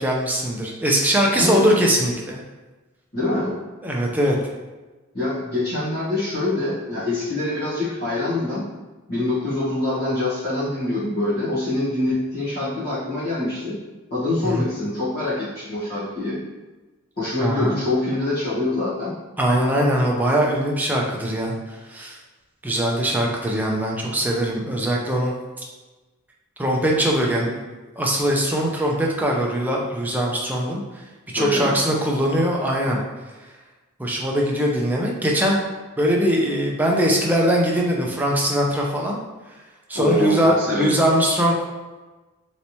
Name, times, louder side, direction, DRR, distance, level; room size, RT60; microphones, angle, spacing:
voice 1, 0.0-2.4 3.8-4.4 14.4-14.6 17.4-17.7 19.4-21.5 21.9-22.2 22.6-25.3 26.6-27.5 28.0-30.8 31.3-33.0 34.0-35.6 36.0-39.2 39.9-41.5, equal, 10° right, -2 dB, 0.4 m, -21 dB
voice 2, 1.3-1.7 3.1-3.6 5.1-8.6 9.1-13.8 14.1-16.4 17.2-19.1 31.4-31.8 39.9-40.9, left 2 dB, 45° left, -10 dB, 1.1 m, -25 dB
3.2 x 2.9 x 2.7 m, 1.2 s
head